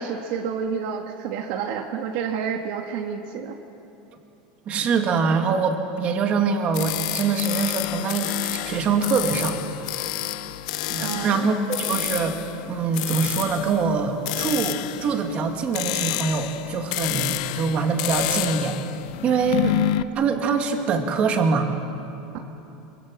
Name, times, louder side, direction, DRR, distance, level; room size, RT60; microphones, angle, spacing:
voice 1, 0.0-3.5 11.0-11.5 22.3-22.4, right 6 dB, 60° right, 3 dB, 1.6 m, -29 dB
voice 2, 4.7-9.6 10.9-12.4 12.7-18.8 19.2-19.8 20.2-21.7, right 5 dB, 30° right, 4 dB, 2.1 m, -24 dB
sound 1, 6.7-20.0, left 15 dB, 65° left, 0.8 m, -29 dB
24.5 x 24.0 x 7.6 m, 2.8 s
supercardioid pair, 165°, 4 cm